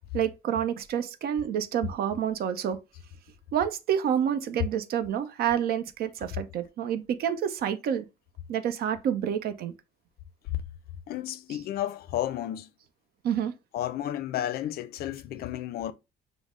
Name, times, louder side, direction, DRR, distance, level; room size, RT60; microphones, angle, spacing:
voice 1, 0.1-2.8 3.5-8.1 8.5-9.7 13.2-13.5, right 9 dB, 65° right, 0.6 m, -28 dB
voice 2, 11.1-12.7 13.7-15.9, left 12 dB, 65° left, 0.5 m, -32 dB
5.3 x 2.0 x 3.6 m
cardioid pair, 110°, 17 cm